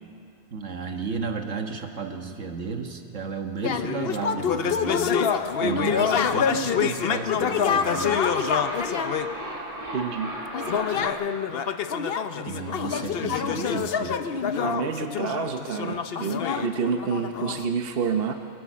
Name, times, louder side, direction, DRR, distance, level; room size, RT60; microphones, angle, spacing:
voice 1, 0.5-8.4 12.4-14.2, right 5 dB, 65° right, 4 dB, 1.8 m, -33 dB
sound 1, 3.6-9.3 10.5-17.7, left 7 dB, 55° left, 0.9 m, -26 dB
sound 2, 6.8-11.1, right 1 dB, 30° right, 3.5 m, -35 dB
voice 2, 9.9-10.3 14.6-18.3, right 6 dB, 50° right, 6 dB, 1.0 m, -28 dB
24.0 x 17.0 x 7.4 m, 2.6 s
omnidirectional pair, 1.4 m